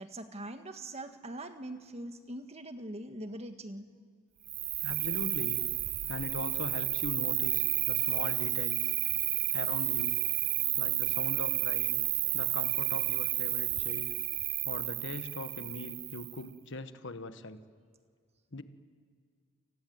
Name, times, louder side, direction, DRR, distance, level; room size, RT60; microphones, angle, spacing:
voice 1, 0.0-3.9, right 1 dB, 30° right, 7 dB, 1.6 m, -42 dB
Cricket, 4.5-16.4, right 18 dB, 65° right, 0.8 m, -31 dB
voice 2, 4.8-5.6 6.1-8.9 9.5-10.2 10.8-12.0 12.3-14.1 14.6-17.6 18.5-18.6, left 2 dB, 55° left, 10 dB, 1.3 m, -40 dB
29.5 x 19.5 x 9.5 m, 2.1 s
head